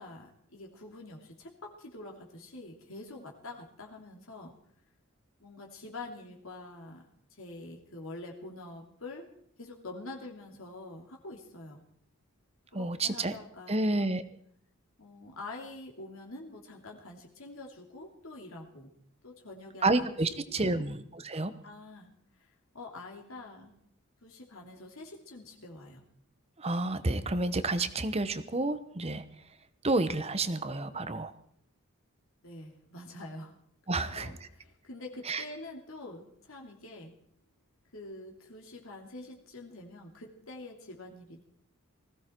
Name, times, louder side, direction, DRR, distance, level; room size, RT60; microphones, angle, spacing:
voice 1, 0.0-4.6 5.4-9.3 9.6-11.8 12.7-14.2 15.0-18.9 19.2-20.1 20.3-20.9 21.6-22.1 22.4-22.5 22.7-23.8 24.2-26.0 32.4-33.5 33.9-37.1 37.9-41.5, left 2 dB, 70° left, -1 dB, 2.9 m, -46 dB
voice 2, 12.7-13.3 13.7-14.2 19.8-21.5 26.6-29.2 29.8-31.3 33.9-34.3 35.3-35.4, right 2 dB, 30° right, 12 dB, 1.0 m, -30 dB
20.0 x 15.5 x 4.5 m, 0.67 s
head